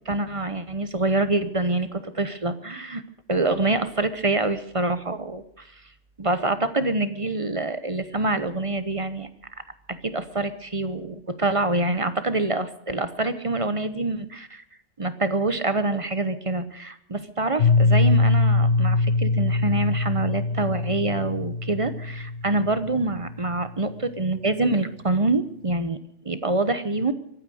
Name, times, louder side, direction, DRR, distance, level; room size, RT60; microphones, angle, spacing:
voice 1, 0.1-3.0 3.3-5.7 6.2-9.3 9.9-14.6 15.0-26.0 26.2-27.1, right 2 dB, 30° right, 11 dB, 0.9 m, -26 dB
Piano, 17.6-23.2, left 3 dB, 60° left, 1.1 m, -22 dB
24.0 x 8.9 x 6.4 m, 0.71 s
omnidirectional pair, 1.2 m